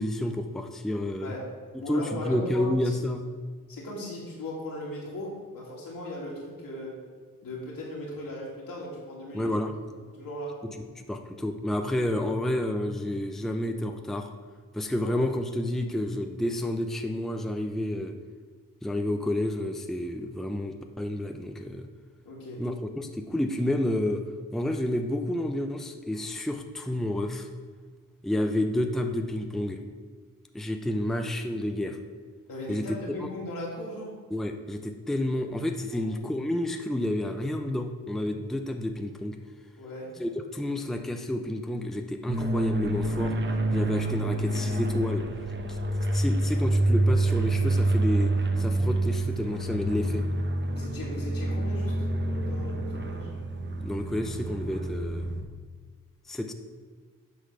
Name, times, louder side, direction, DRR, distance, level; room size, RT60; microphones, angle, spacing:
voice 1, 0.0-1.3 1.9-3.2 9.3-9.7 11.0-14.3 14.7-18.2 18.8-21.9 22.6-24.3 24.5-27.5 28.2-29.8 30.5-32.0 32.7-32.8 33.2-33.3 34.3-39.4 40.2-43.4 43.7-45.3 45.7-45.8 46.1-50.3 53.8-55.4 56.3-56.5, left 1 dB, ahead, 5 dB, 0.6 m, -30 dB
voice 2, 1.2-1.5 1.8-2.7 3.7-7.0 7.4-9.5 10.1-10.6 15.0-15.2 22.2-22.7 32.5-34.1 35.9-36.0 39.8-40.2 50.7-53.3, left 1 dB, 80° left, -4 dB, 2.6 m, -38 dB
sound 1, 42.3-55.4, right 2 dB, 35° right, 1.0 m, -27 dB
8.3 x 4.0 x 6.6 m, 1.5 s
cardioid pair, 65°, 34 cm